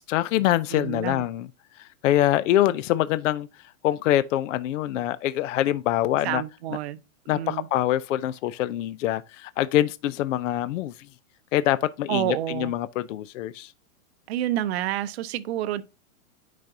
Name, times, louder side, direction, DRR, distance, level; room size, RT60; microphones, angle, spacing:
voice 1, 0.1-1.5 2.0-3.5 3.8-6.4 7.3-10.9 11.5-13.7, left 13 dB, 60° left, 0.5 m, -24 dB
voice 2, 0.7-1.2 6.2-7.0 7.3-7.7 12.1-12.7 14.3-15.8, right 13 dB, 50° right, 0.7 m, -29 dB
9.3 x 5.1 x 2.7 m
hypercardioid pair, 155°, 42 cm